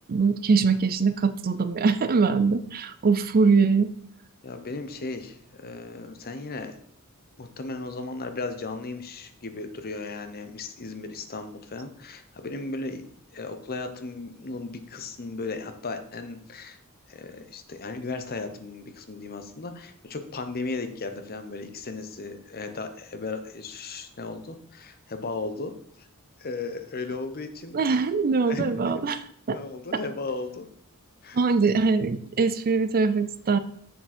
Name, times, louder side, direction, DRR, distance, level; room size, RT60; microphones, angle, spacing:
voice 1, 0.1-3.9 27.7-29.6 29.9-30.0 31.3-33.6, right 4 dB, 40° right, 13 dB, 0.4 m, -22 dB
voice 2, 4.4-6.8 7.4-13.1 13.3-16.8 17.1-25.7 26.0-26.1 26.4-27.8 28.5-28.9 29.5-30.6 31.2-31.4, left 3 dB, 45° left, 8 dB, 0.8 m, -36 dB
6.9 x 6.3 x 4.3 m, 0.65 s
head